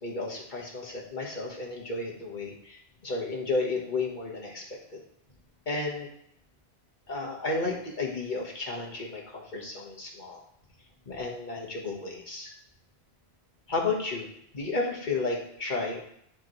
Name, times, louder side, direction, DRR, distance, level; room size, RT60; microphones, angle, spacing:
voice 1, 0.0-5.0 5.7-6.1 7.1-10.4 11.1-12.5 13.7-14.3 14.5-16.0, left 3 dB, 45° left, -2 dB, 1.7 m, -32 dB
11.5 x 4.6 x 3.2 m, 0.71 s
omnidirectional pair, 1.1 m